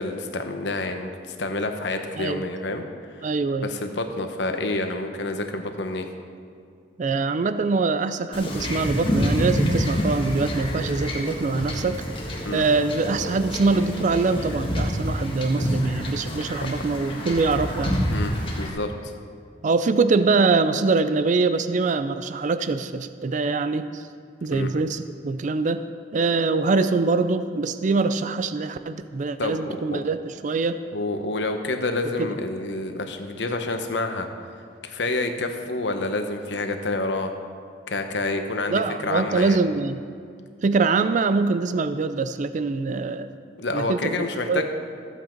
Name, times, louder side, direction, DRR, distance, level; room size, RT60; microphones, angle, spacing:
voice 1, 0.0-2.8 3.6-6.1 12.4-12.6 15.6-15.8 16.6-16.7 18.1-19.1 24.5-24.7 29.4-30.0 30.9-34.3 34.8-37.3 37.9-39.6 43.6-44.6, left 2 dB, 70° left, 6 dB, 1.0 m, -28 dB
voice 2, 3.2-3.7 7.0-12.0 12.5-18.0 19.6-24.0 24.4-25.8 26.1-30.8 32.2-32.3 38.7-40.0 40.6-43.3 43.7-44.6, right 3 dB, 45° right, 11 dB, 0.4 m, -23 dB
Wind / Ocean / Boat Water vehicle, 8.3-18.7, equal, 30° left, 1.6 m, -27 dB
14.5 x 8.1 x 4.5 m, 2.2 s
head